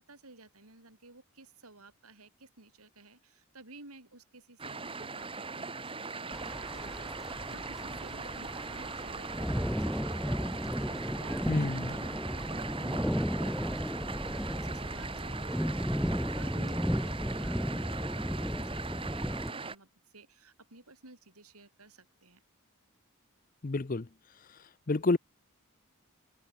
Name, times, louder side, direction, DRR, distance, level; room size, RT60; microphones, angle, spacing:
voice 1, 0.0-22.4, right 3 dB, 90° right, 5.7 m, -55 dB
sound 1, 4.6-19.8, right 4 dB, 25° right, 1.8 m, -40 dB
sound 2, 6.3-19.5, equal, ahead, 0.9 m, -34 dB
voice 2, 11.5-11.9 23.6-24.1 24.9-25.2, left 3 dB, 40° left, 0.6 m, -29 dB
head